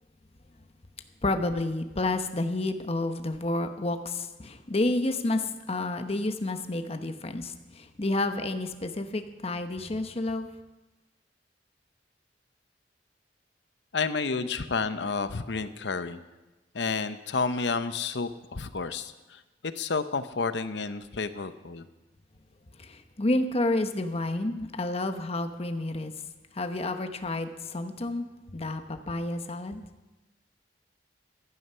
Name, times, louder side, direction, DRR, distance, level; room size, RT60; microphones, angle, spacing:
voice 1, 1.2-10.5 22.8-26.1 26.5-28.3 28.5-29.8, left 2 dB, 35° left, 8 dB, 0.9 m, -30 dB
voice 2, 13.9-16.2 16.7-21.8, left 4 dB, 70° left, 12 dB, 0.8 m, -30 dB
15.5 x 11.0 x 5.6 m, 1.1 s
head